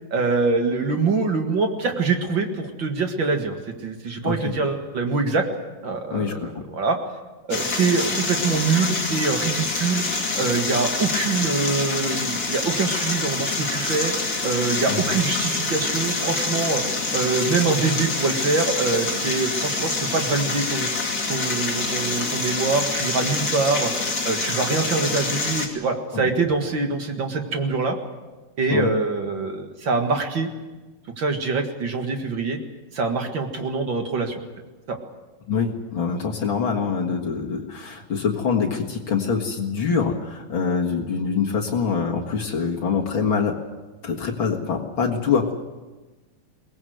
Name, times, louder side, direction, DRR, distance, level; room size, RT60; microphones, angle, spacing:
voice 1, 0.1-5.5 5.8-7.0 7.5-10.0 10.4-14.1 14.4-16.8 17.1-20.9 21.3-23.9 24.2-28.0 28.6-30.5 31.2-32.6 32.9-34.4 34.9-35.0, right 4 dB, 45° right, 4 dB, 1.7 m, -24 dB
voice 2, 6.1-6.5 14.9-15.1 26.1-26.3 28.7-28.9 35.5-43.6 44.0-45.5, left 5 dB, 45° left, 0 dB, 1.7 m, -24 dB
sound 1, 7.5-25.7, left 3 dB, 30° left, 2.5 m, -26 dB
22.5 x 19.5 x 7.9 m, 1.2 s
omnidirectional pair, 4.4 m